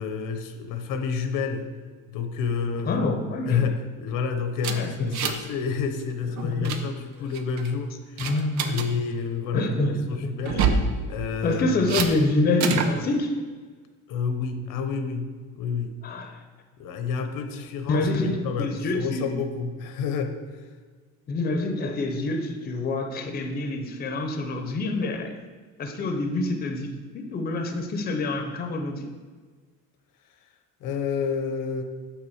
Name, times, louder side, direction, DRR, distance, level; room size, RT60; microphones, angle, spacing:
voice 1, 0.0-1.7 2.1-3.0 3.5-8.3 8.6-10.6 11.1-12.0 14.1-15.9 16.8-20.7 30.8-31.8, left 5 dB, 85° left, 6 dB, 0.9 m, -29 dB
voice 2, 2.9-3.7 4.7-5.2 6.4-6.8 8.2-8.8 9.5-10.8 11.4-13.4 16.0-16.4 17.9-19.3 21.3-25.3 25.8-29.1, left 2 dB, 30° left, 5 dB, 0.6 m, -27 dB
sound 1, 4.6-5.5 5.8-6.0 6.4-6.8 7.3-7.7 8.2-8.9 10.4-10.9 11.9-12.1 12.6-12.9, right 6 dB, 60° right, 0.7 m, -26 dB
6.0 x 4.9 x 6.3 m, 1.5 s
cardioid pair, 175°, 32 cm